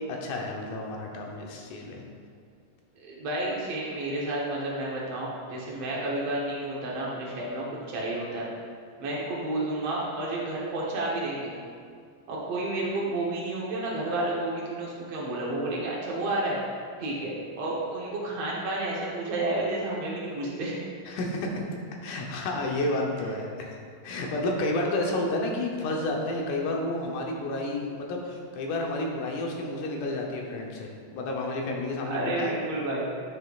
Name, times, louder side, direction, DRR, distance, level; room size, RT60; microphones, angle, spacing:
voice 1, 0.2-2.0 21.1-21.6 22.0-23.8 24.0-32.5, left 2 dB, 75° left, 0 dB, 2.2 m, -30 dB
voice 2, 3.0-8.5 9.0-11.5 12.3-16.6 17.0-20.8 23.1-23.3 32.0-33.1, right 2 dB, 60° right, -5 dB, 1.8 m, -31 dB
9.5 x 6.3 x 2.4 m, 2.2 s
omnidirectional pair, 3.9 m